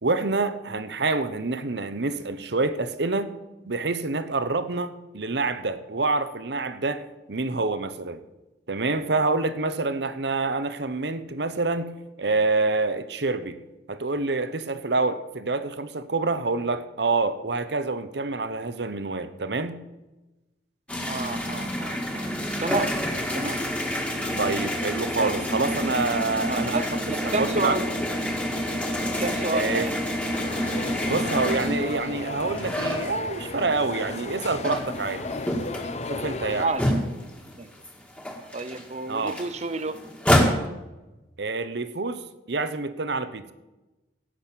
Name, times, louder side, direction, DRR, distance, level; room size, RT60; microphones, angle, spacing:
voice 1, 0.0-3.4 3.7-7.0 7.3-8.2 8.7-13.6 13.9-19.8 24.4-26.9 27.2-27.8 29.5-29.9 31.0-35.3 36.1-36.7 39.1-39.4 41.4-42.2 42.5-43.5, right 3 dB, 65° right, 12 dB, 0.9 m, -27 dB
sound 1, 20.9-33.7 34.1-37.5 37.8-37.9 38.2-40.5, equal, 5° left, 1.8 m, -28 dB
voice 2, 21.1-22.3 22.6-23.0 23.3-23.6 25.2-25.4 26.5-27.9 29.2-30.0 36.6-37.1 37.6-37.7 38.5-40.0, right 3 dB, 35° right, 12 dB, 0.7 m, -30 dB
sound 2, 30.3-36.7, left 3 dB, 35° left, 0.8 m, -34 dB
16.0 x 6.4 x 8.5 m, 1.1 s
head